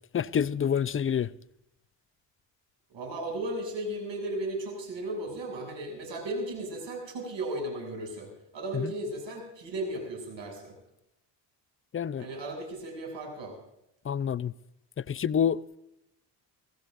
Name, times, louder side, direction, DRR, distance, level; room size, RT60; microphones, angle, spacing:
voice 1, 0.1-1.3 8.7-8.9 11.9-12.3 14.0-14.5 15.1-15.6, left 8 dB, 25° left, 0.6 m, -27 dB
voice 2, 2.9-8.3 8.5-10.7 12.2-13.6, right 1 dB, 65° right, 7.4 m, -35 dB
24.0 x 15.5 x 2.6 m
supercardioid pair, 60°, 48 cm